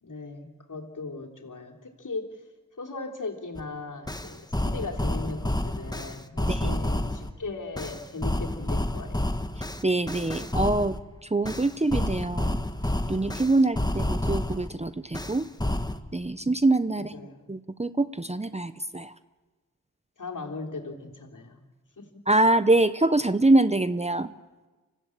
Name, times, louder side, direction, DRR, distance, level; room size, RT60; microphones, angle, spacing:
voice 1, 0.0-2.4 2.8-9.3 16.9-17.5 20.2-21.6 22.0-22.1, left 3 dB, 60° left, 0 dB, 3.5 m, -38 dB
sound 1, 3.6-3.7 4.1-7.3 7.8-11.0 11.4-14.7 15.1-16.0, left 1 dB, 10° left, 1.5 m, -29 dB
voice 2, 6.5-6.8 9.8-10.9 11.3-12.6 13.1-15.5 16.1-19.1 22.3-24.3, right 2 dB, 20° right, 13 dB, 0.8 m, -24 dB
25.0 x 15.5 x 8.7 m, 1.2 s
cardioid pair, 45°, 36 cm